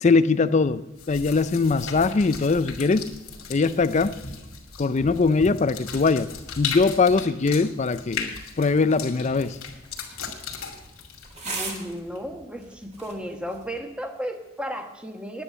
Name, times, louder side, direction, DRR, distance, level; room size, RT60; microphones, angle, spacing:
voice 1, 0.0-3.1 3.5-4.2 4.8-6.3 6.6-9.6, left 4 dB, 35° left, 0.4 m, -21 dB
sound 1, 1.0-12.2, left 6 dB, 90° left, 2.4 m, -37 dB
sound 2, 8.8-13.8, right 3 dB, 30° right, 1.9 m, -40 dB
voice 2, 11.4-15.4, equal, 5° right, 1.1 m, -34 dB
9.9 x 9.9 x 7.5 m
head